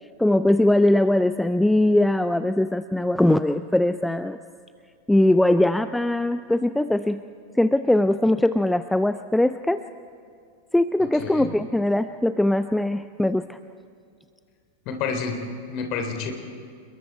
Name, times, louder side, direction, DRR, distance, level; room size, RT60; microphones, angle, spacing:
voice 1, 0.2-4.4 5.1-7.2 7.5-9.8 10.7-13.6, left 1 dB, 5° left, 12 dB, 0.4 m, -21 dB
voice 2, 11.0-11.5 14.8-15.4 15.7-16.3, left 5 dB, 40° left, 5 dB, 3.3 m, -29 dB
28.5 x 21.5 x 4.6 m, 2.3 s
figure-of-eight pair, 90°, 0 cm